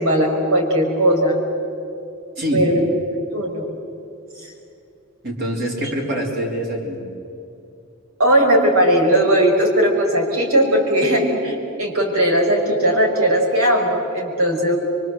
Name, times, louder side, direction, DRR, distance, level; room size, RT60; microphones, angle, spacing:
voice 1, 0.0-1.4 2.5-2.8 3.3-3.6 8.2-14.8, right 1 dB, 80° right, 1 dB, 5.6 m, -18 dB
voice 2, 2.4-2.7 5.2-7.0, equal, 50° right, -2 dB, 4.2 m, -24 dB
25.0 x 24.0 x 8.0 m, 2.6 s
head